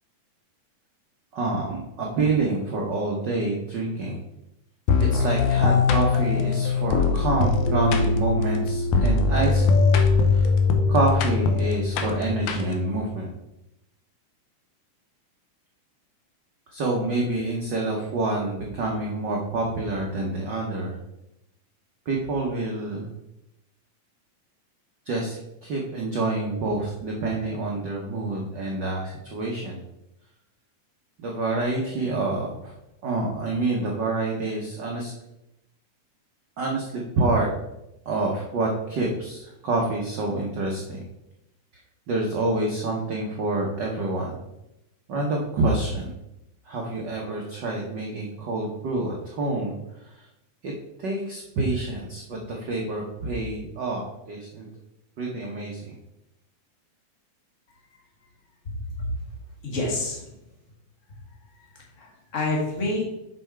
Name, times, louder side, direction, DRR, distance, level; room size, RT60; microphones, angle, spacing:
voice 1, 1.3-4.2 5.0-9.6 10.3-10.5 10.9-13.3 16.7-21.0 22.0-23.1 25.0-25.3 25.6-29.8 31.2-32.7 33.0-35.1 36.6-37.5 38.0-41.0 42.1-44.4 45.1-46.1 46.6-50.3 50.6-50.7 51.0-54.7 55.2-56.0, right 2 dB, 90° right, -1 dB, 0.9 m, -27 dB
sound 1, 4.9-13.0, left 4 dB, 75° left, 2.1 m, -21 dB
voice 2, 58.6-59.1 59.6-60.3 61.6-63.0, left 2 dB, 30° left, -1 dB, 1.6 m, -29 dB
6.9 x 5.6 x 4.5 m, 0.88 s
omnidirectional pair, 3.5 m